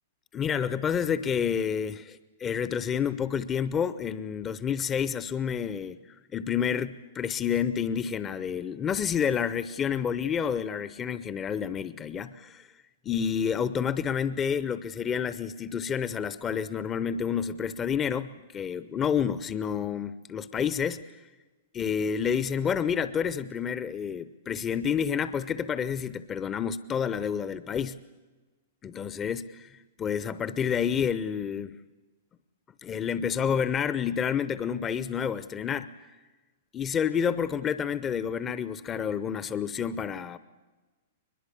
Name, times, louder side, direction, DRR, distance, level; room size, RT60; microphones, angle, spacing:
voice 1, 0.3-6.0 6.3-12.7 13.0-21.0 21.7-28.0 28.8-29.7 30.0-31.8 32.8-35.9 36.7-40.4, left 7 dB, 25° left, 14 dB, 0.8 m, -29 dB
22.5 x 21.5 x 8.5 m, 1.3 s
figure-of-eight pair, 105°, 0 cm